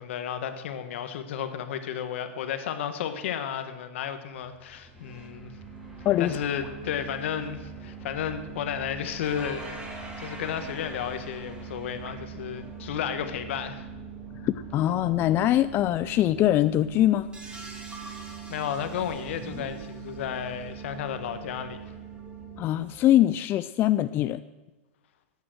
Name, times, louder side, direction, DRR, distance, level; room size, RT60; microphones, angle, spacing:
voice 1, 0.0-5.5 6.2-9.7 10.2-13.9 18.1-21.8, left 9 dB, 70° left, 8 dB, 1.4 m, -33 dB
sound 1, 4.4-8.7 9.2-14.9 16.0-23.1, right 2 dB, 15° right, 2.8 m, -47 dB
sound 2, 4.9-22.7, right 6 dB, 5° left, 2.3 m, -42 dB
voice 2, 14.4-17.3 22.6-24.4, left 13 dB, 35° left, 13 dB, 0.3 m, -23 dB
14.5 x 9.3 x 6.2 m, 1.2 s
hypercardioid pair, 120°, 7 cm